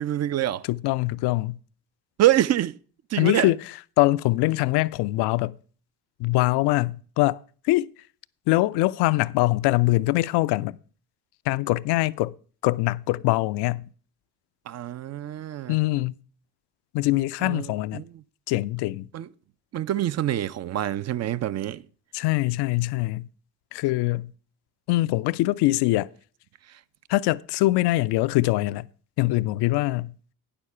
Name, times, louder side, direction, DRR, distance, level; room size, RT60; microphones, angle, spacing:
voice 1, 0.0-0.6 2.2-2.8 3.1-3.5 14.7-15.8 17.4-18.0 19.1-19.3 19.7-21.8, right 13 dB, 35° right, 0.5 m, -25 dB
voice 2, 0.7-1.6 3.2-3.6 4.0-5.6 6.2-7.4 7.6-7.9 8.5-10.8 11.5-12.3 12.6-13.9 15.7-16.1 16.9-18.0 18.5-19.1 22.1-23.3 23.7-24.3 24.9-26.1 27.1-28.9 29.2-30.1, left 18 dB, 55° left, 0.5 m, -23 dB
9.7 x 6.9 x 5.5 m
figure-of-eight pair, 45°, 50 cm